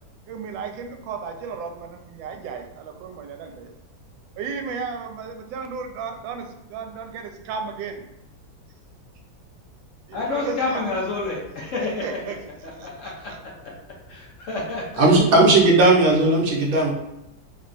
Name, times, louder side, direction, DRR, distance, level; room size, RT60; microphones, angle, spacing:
voice 1, 0.3-3.7 4.4-8.1 10.1-10.8 12.0-12.4 12.8-13.4, right 5 dB, 85° right, 4 dB, 1.3 m, -34 dB
voice 2, 10.1-12.0 13.0-13.3 14.1-15.1, left 3 dB, 60° left, -3 dB, 0.9 m, -28 dB
voice 3, 15.0-16.9, right 2 dB, 60° right, -2 dB, 1.0 m, -16 dB
3.4 x 2.3 x 3.8 m, 0.92 s
omnidirectional pair, 2.0 m